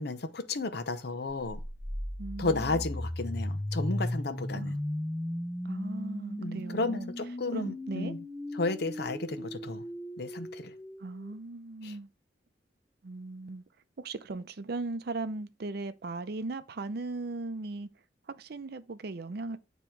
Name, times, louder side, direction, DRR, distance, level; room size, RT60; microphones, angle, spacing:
voice 1, 0.0-1.6 2.4-4.8 6.4-8.2 8.5-9.9 10.2-10.7 11.8-11.9, left 3 dB, 65° left, 0.7 m, -33 dB
sound 1, 1.5-11.3, left 1 dB, 10° left, 0.5 m, -36 dB
voice 2, 2.2-2.8 4.5-4.8 5.6-7.1 7.5-8.2 11.0-12.1 13.0-13.6 14.0-17.9 18.3-19.6, right 3 dB, 60° right, 0.6 m, -38 dB
8.9 x 3.0 x 4.6 m
head